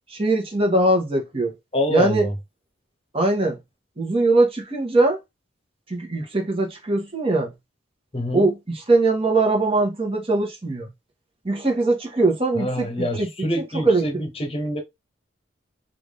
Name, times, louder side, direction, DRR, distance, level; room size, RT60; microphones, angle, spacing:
voice 1, 0.1-1.5 1.9-2.3 3.1-3.6 4.0-5.2 5.9-7.5 8.3-8.6 8.9-10.9 11.4-12.9 13.2-14.2, right 2 dB, 30° right, 1.2 m, -21 dB
voice 2, 1.7-2.3 8.1-8.5 12.5-14.8, equal, 30° left, 1.0 m, -25 dB
3.4 x 2.6 x 3.4 m
head